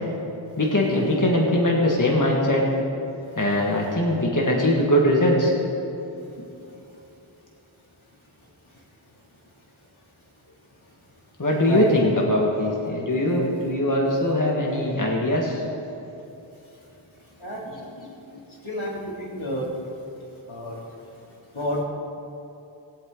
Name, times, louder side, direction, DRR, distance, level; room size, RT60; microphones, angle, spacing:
voice 1, 0.6-2.6 3.4-5.5 11.4-15.6, left 1 dB, 40° left, -2 dB, 1.7 m, -21 dB
voice 2, 17.4-17.8 18.6-19.7 20.5-20.8 21.5-21.8, equal, 85° left, -5 dB, 2.8 m, -29 dB
19.5 x 8.2 x 3.8 m, 2.9 s
wide cardioid pair, 55°, 46 cm